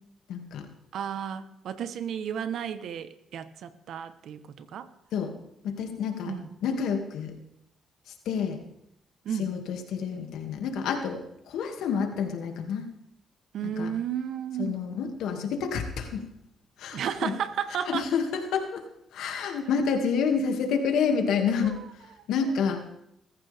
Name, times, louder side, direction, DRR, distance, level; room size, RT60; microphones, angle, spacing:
voice 1, 0.3-0.7 5.1-5.3 5.6-6.3 6.6-7.3 8.3-8.6 9.4-11.2 11.5-12.9 13.6-13.9 14.6-16.2 16.8-17.3 17.9-18.8 19.1-21.8 22.3-22.8, left 6 dB, 85° left, 2.3 m, -28 dB
voice 2, 0.9-4.9 6.3-6.5 9.2-9.5 13.5-14.8 16.9-18.1 21.6-21.9 22.5-22.6, right 8 dB, 70° right, 1.1 m, -33 dB
20.5 x 14.5 x 3.6 m
cardioid pair, 90°, 0 cm